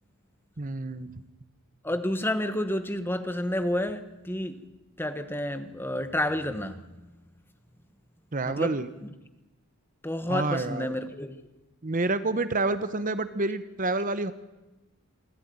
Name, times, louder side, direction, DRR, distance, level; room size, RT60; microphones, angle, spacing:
voice 1, 0.6-1.2 8.3-8.9 10.3-10.9 11.8-14.3, right 3 dB, 35° right, 13 dB, 0.9 m, -28 dB
voice 2, 1.8-4.6 5.0-7.0 8.5-9.1 10.0-11.4, left 1 dB, 10° left, 10 dB, 1.1 m, -30 dB
26.0 x 13.5 x 9.4 m, 1.1 s
head